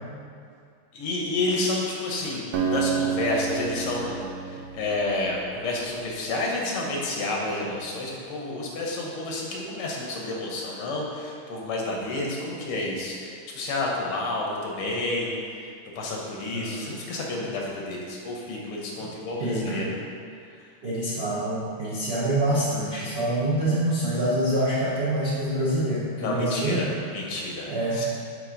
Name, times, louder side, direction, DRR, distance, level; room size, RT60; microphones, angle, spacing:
voice 1, 0.9-4.2 4.5-19.9 26.2-28.1, left 2 dB, 85° left, -2 dB, 1.9 m, -30 dB
Acoustic guitar, 2.5-6.1, right 6 dB, 90° right, 0.8 m, -30 dB
voice 2, 19.4-19.8 20.8-26.8 27.7-28.0, right 1 dB, 55° right, -9 dB, 0.6 m, -26 dB
8.9 x 3.2 x 3.8 m, 2.3 s
omnidirectional pair, 2.4 m